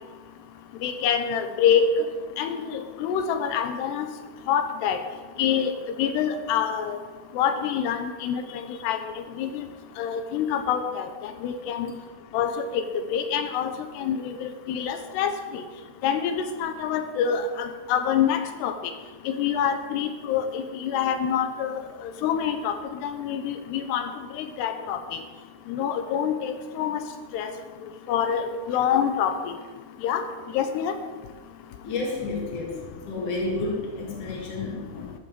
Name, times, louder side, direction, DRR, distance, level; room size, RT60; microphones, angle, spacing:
voice 1, 0.8-1.9 2.4-4.1 4.5-5.0 5.4-5.7 6.0-7.0 7.4-9.0 9.4-9.6 10.0-11.9 12.3-12.8 13.1-13.7 14.0-15.6 16.0-18.7 19.3-21.7 22.2-22.8 23.0-25.0 25.7-27.0 27.3-27.5 28.1-29.6 30.0-30.2 30.5-30.9, left 8 dB, 80° left, 8 dB, 3.0 m, -26 dB
voice 2, 31.8-35.1, left 2 dB, 50° left, -3 dB, 4.2 m, -31 dB
14.5 x 12.0 x 5.2 m, 1.3 s
omnidirectional pair, 4.7 m